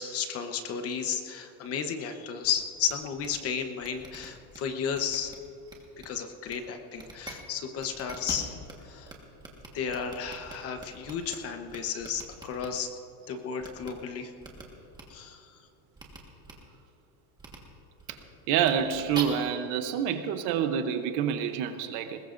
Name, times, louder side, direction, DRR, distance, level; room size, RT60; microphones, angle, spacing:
voice 1, 0.0-5.3 6.0-8.5 8.8-9.1 9.7-12.9 13.3-14.3 15.1-15.6, left 7 dB, 30° left, 1.0 m, -33 dB
sound 1, 2.4-2.5 2.9-3.0 3.2-3.4 3.8-4.6 4.9-5.4 5.7-6.1 6.5-6.6 6.9-7.3 7.8-8.7 9.1-9.2 9.4-11.4 11.7-12.7 13.6-13.9 14.4-14.6 14.9-15.0 16.0-16.2 16.4-16.5 17.4-17.6 18.0-18.1 18.6-19.2, right 3 dB, 10° right, 1.4 m, -42 dB
voice 2, 18.5-22.2, right 8 dB, 45° right, 0.8 m, -27 dB
21.5 x 20.0 x 2.6 m
cardioid pair, 165°, 44 cm